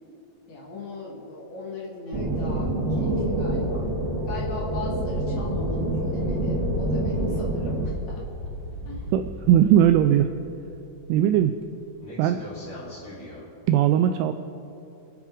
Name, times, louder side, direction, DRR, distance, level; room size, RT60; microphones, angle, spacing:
voice 1, 0.5-3.9 4.3-8.3 8.8-9.1, left 2 dB, 80° left, -3 dB, 1.6 m, -38 dB
sound 1, 2.1-7.9, right 1 dB, 35° right, 2.3 m, -26 dB
sound 2, 4.4-11.7 12.0-13.4, equal, 20° left, 2.7 m, -38 dB
voice 2, 9.1-10.3 11.1-11.5 12.2-12.4 13.7-14.3, right 10 dB, 85° right, 8 dB, 2.8 m, -19 dB
28.0 x 10.5 x 3.6 m, 2.9 s
omnidirectional pair, 5.9 m